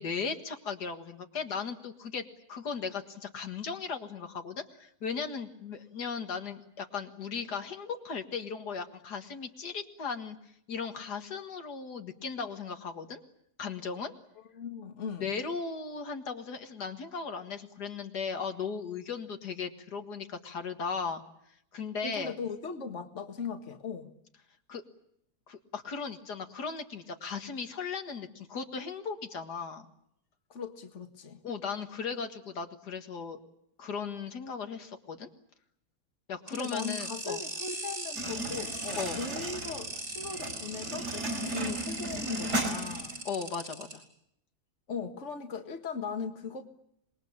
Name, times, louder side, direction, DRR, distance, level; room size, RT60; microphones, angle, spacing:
voice 1, 0.0-10.4 10.7-13.2 13.6-14.1 15.2-21.2 21.7-22.3 24.7-24.8 25.5-29.9 31.4-33.4 33.8-35.3 36.3-37.4 39.0-39.2 43.3-44.0, left 5 dB, 80° left, 2.3 m, -37 dB
voice 2, 14.6-15.3 22.0-24.1 30.5-31.4 36.5-43.2 44.9-46.6, left 5 dB, 45° left, 2.0 m, -38 dB
sound 1, 36.5-43.9, right 2 dB, 50° right, 7.7 m, -39 dB
sound 2, 38.2-43.2, right 1 dB, 80° right, 5.1 m, -36 dB
26.5 x 21.0 x 8.8 m
omnidirectional pair, 1.7 m